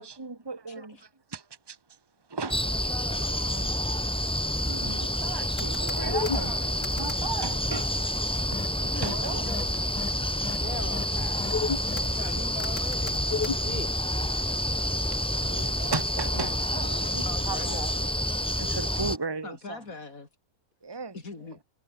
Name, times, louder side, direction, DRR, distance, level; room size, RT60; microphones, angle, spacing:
voice 1, 0.0-2.0 2.3-2.6 4.7-6.6 7.0-8.2 8.5-8.7 9.0-9.5 10.5-10.6 15.1-18.0 18.6-19.8 20.8-21.2, right 4 dB, 15° right, 1.7 m, -36 dB
voice 2, 0.7-1.1 2.9-3.8 6.0-6.7 8.8-9.8 11.8-13.3 17.3-18.0 19.4-20.3 21.1-21.6, left 3 dB, 55° left, 3.9 m, -41 dB
sound 1, 2.5-19.2, left 1 dB, 5° left, 1.1 m, -28 dB
sound 2, 5.6-6.4 6.8-7.2 8.5-8.7 9.0-9.1 9.5-9.6 10.0-10.1 10.4-10.6 10.9-11.0 11.4-12.1 12.6-13.5, left 5 dB, 85° left, 3.1 m, -31 dB
voice 3, 10.6-12.2 13.4-13.9 16.3-16.6 17.4-17.7 18.0-18.1, left 2 dB, 30° left, 2.2 m, -42 dB
omnidirectional pair, 1.8 m